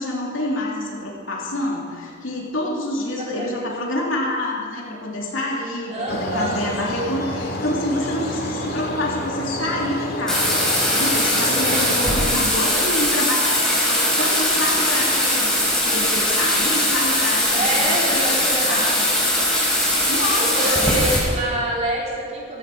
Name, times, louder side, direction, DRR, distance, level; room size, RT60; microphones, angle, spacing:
voice 1, 0.0-19.1 20.1-20.9, left 1 dB, 75° left, -3 dB, 3.2 m, -27 dB
voice 2, 3.2-3.6 5.9-6.6 12.6-13.0 17.5-19.0 20.4-22.6, right 1 dB, 35° right, -4 dB, 3.7 m, -26 dB
sound 1, 6.1-12.2, left 1 dB, 50° left, 2.3 m, -29 dB
Bathtub (filling or washing), 10.3-21.2, left 1 dB, 5° left, 4.3 m, -20 dB
16.5 x 15.0 x 5.0 m, 2.2 s
head